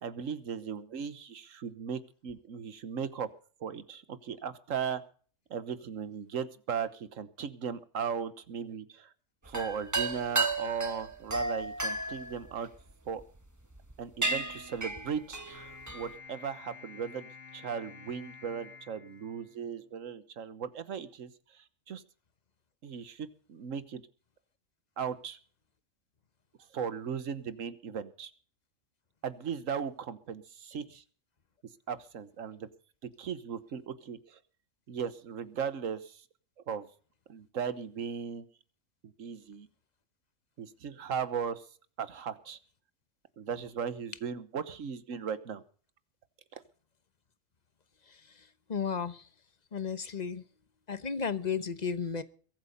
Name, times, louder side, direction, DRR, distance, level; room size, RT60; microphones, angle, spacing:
voice 1, 0.0-3.3 3.6-5.0 5.5-9.1 9.4-12.7 13.0-13.2 14.0-22.0 22.8-24.0 25.0-25.4 26.7-28.3 29.2-31.0 31.9-32.7 33.2-34.4 34.9-36.2 36.7-36.9 37.3-38.5 39.0-39.7 40.6-41.7 42.0-42.6 43.4-45.6 46.5-46.6, right 7 dB, 80° right, 1.5 m, -37 dB
sound 1, 9.5-13.2 13.8-13.9 14.2-16.1, right 2 dB, 15° right, 1.1 m, -33 dB
sound 2, 15.5-20.0, left 5 dB, 65° left, 3.0 m, -50 dB
voice 2, 48.7-49.2 49.7-50.4 50.9-52.2, left 6 dB, 35° left, 1.1 m, -33 dB
22.0 x 8.5 x 5.3 m
omnidirectional pair, 1.3 m